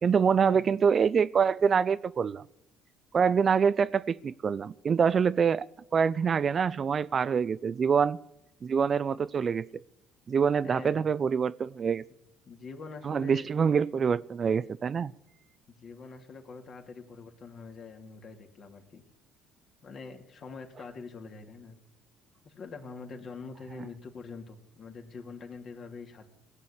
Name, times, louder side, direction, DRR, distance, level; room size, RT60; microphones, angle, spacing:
voice 1, 0.0-2.4 3.1-5.7 5.9-8.2 8.6-9.7 10.3-12.0 13.0-15.1, right 6 dB, 40° right, 0.4 m, -25 dB
voice 2, 10.6-11.1 12.5-13.5 15.8-19.0 19.8-21.8 22.4-26.3, left 4 dB, 50° left, 2.7 m, -44 dB
18.0 x 8.3 x 8.7 m
hypercardioid pair, 65°, 0 cm